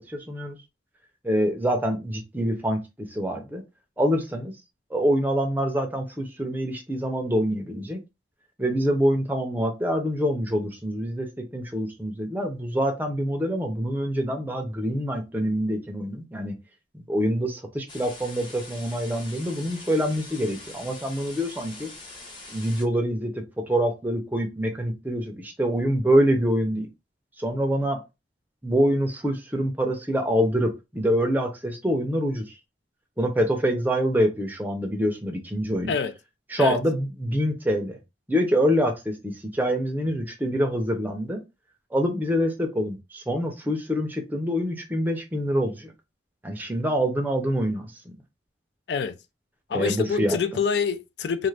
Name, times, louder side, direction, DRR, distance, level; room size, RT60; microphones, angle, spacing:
voice 1, 0.1-0.6 1.2-3.6 4.0-4.5 4.9-8.0 8.6-16.6 16.9-21.9 22.5-26.9 27.4-28.0 28.6-32.5 33.2-35.9 36.5-38.0 38.3-41.4 41.9-45.9 46.4-48.2 49.7-50.4, equal, 10° right, 0.5 m, -25 dB
sound 1, 17.9-22.8, left 2 dB, 25° left, 0.8 m, -43 dB
voice 2, 49.7-51.5, left 6 dB, 70° left, 0.4 m, -26 dB
2.5 x 2.4 x 3.2 m
head